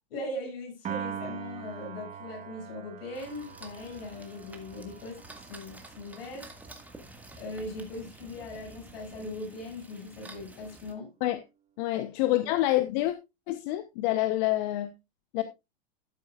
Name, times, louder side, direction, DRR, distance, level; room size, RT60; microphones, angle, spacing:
voice 1, 0.1-6.8 7.4-11.1 11.9-12.0 12.3-12.4, left 2 dB, 70° left, 6.8 m, -40 dB
Piano, 0.8-7.2, right 9 dB, 20° right, 1.4 m, -43 dB
sound 1, 3.1-10.9, right 2 dB, 5° right, 1.7 m, -50 dB
voice 2, 11.8-13.1 13.5-14.9 15.3-15.4, left 15 dB, 50° left, 0.9 m, -27 dB
12.0 x 9.7 x 2.4 m
hypercardioid pair, 120°, 31 cm